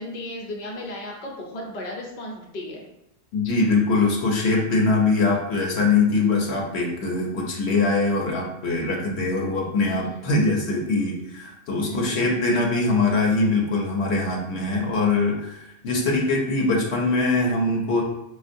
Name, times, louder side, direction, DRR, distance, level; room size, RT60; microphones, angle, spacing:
voice 1, 0.0-2.8 9.8-10.2 11.8-12.3, left 1 dB, 45° left, -1 dB, 0.7 m, -35 dB
voice 2, 3.3-18.0, left 3 dB, 70° left, -1 dB, 0.9 m, -22 dB
4.2 x 2.3 x 2.5 m, 0.85 s
omnidirectional pair, 1.1 m